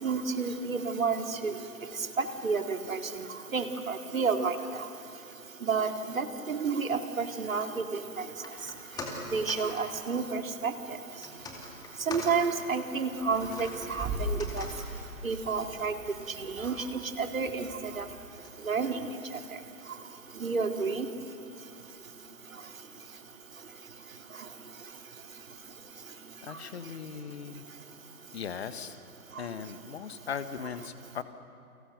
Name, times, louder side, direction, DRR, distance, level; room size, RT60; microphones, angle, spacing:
voice 1, 0.0-1.6 2.2-3.3 3.5-4.6 5.7-5.9 6.2-8.3 9.3-10.7 12.1-14.7 15.2-15.9 16.4-17.7 17.9-18.0 18.7-19.0 20.4-21.1, right 5 dB, 60° right, 6 dB, 2.3 m, -30 dB
sound 1, 8.3-20.7 21.0-21.1, left 2 dB, 10° left, 2.4 m, -46 dB
sound 2, 13.1-18.3, right 1 dB, 15° right, 5.4 m, -40 dB
voice 2, 26.4-27.6 28.3-29.0 29.4-31.2, left 7 dB, 45° left, 11 dB, 1.4 m, -38 dB
29.5 x 25.0 x 6.6 m, 2.6 s
figure-of-eight pair, 130°, 45 cm